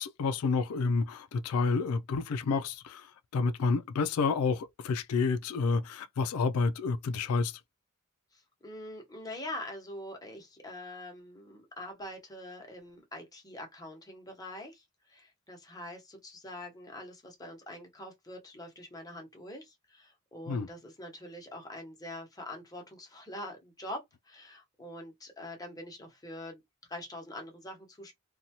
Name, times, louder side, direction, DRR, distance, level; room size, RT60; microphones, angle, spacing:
voice 1, 0.0-7.6 20.5-20.7, left 4 dB, 90° left, 0.4 m, -29 dB
voice 2, 8.3-26.6 26.9-28.1, left 1 dB, 15° left, 0.9 m, -44 dB
2.7 x 2.2 x 2.8 m
head